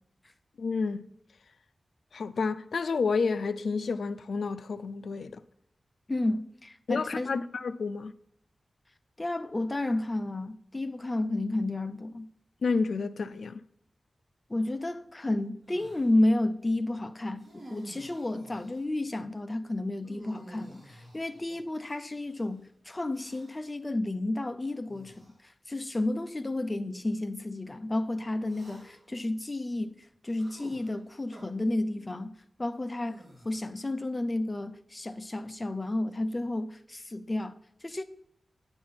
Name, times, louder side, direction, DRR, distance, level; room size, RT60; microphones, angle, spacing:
voice 1, 0.6-1.1 2.1-5.4 6.9-8.1 12.6-13.6, left 4 dB, 80° left, 0.4 m, -30 dB
voice 2, 6.1-7.4 9.2-12.3 14.5-25.1 25.4-32.3 32.6-38.0, left 2 dB, 25° left, 0.6 m, -31 dB
sound 1, 15.7-16.2 17.4-18.9 20.0-22.4 23.1-23.7 24.8-25.4 26.2-26.3 28.4-29.2 30.4-31.4 33.0-33.8, right 1 dB, 30° right, 3.1 m, -51 dB
9.3 x 4.5 x 5.8 m
wide cardioid pair, 100°, 0 cm